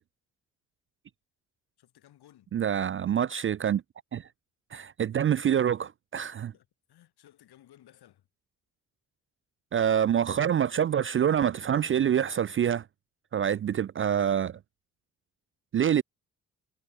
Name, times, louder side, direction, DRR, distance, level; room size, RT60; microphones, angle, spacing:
voice 1, 1.8-2.5 6.5-8.3, left 12 dB, 60° left, 6.0 m, -58 dB
voice 2, 2.5-3.8 4.1-4.3 4.7-6.5 9.7-12.8 13.3-14.6 15.7-16.0, right 9 dB, 30° right, 0.5 m, -26 dB
figure-of-eight pair, 40°, 43 cm